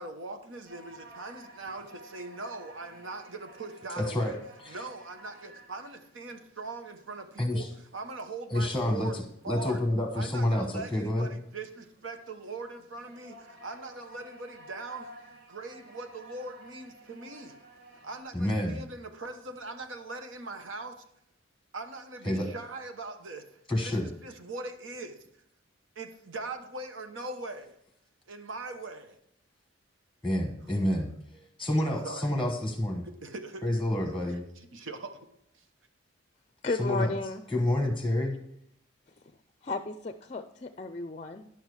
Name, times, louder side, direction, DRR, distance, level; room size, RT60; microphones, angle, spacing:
voice 1, 0.0-4.4 4.7-7.7 7.9-9.2 9.4-9.8 10.1-15.1 15.5-17.6 18.0-21.0 21.7-25.2 25.9-27.7 28.3-29.2 30.7-30.8 31.4-31.5 32.0-32.3 33.2-33.6 34.7-35.3 35.5-35.6, right 3 dB, 75° right, 1.0 m, -41 dB
sound 1, 0.6-18.2, right 1 dB, 50° right, 1.8 m, -53 dB
voice 2, 4.0-4.4 7.4-7.7 8.5-11.3 18.3-18.8 22.2-22.5 23.7-24.1 30.2-31.1 31.6-33.0 33.6-34.4 36.8-37.1 37.5-38.4, left 1 dB, ahead, 1.1 m, -28 dB
voice 3, 36.6-37.4 39.6-41.5, left 3 dB, 30° left, 0.4 m, -33 dB
10.5 x 7.3 x 4.8 m
head